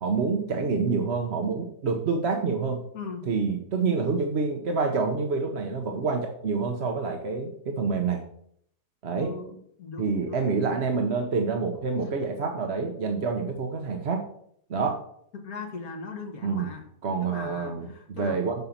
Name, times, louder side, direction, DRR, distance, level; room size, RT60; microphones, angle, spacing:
voice 1, 0.0-2.8 3.3-8.2 9.0-9.3 10.0-14.2 14.7-15.0 16.4-16.7 17.0-18.5, right 4 dB, 45° right, 3 dB, 1.0 m, -27 dB
voice 2, 2.9-3.3 9.2-10.4 12.0-12.1 15.3-16.9 17.2-18.5, left 4 dB, 60° left, 3 dB, 2.1 m, -39 dB
7.9 x 5.6 x 7.2 m, 0.69 s
omnidirectional pair, 1.8 m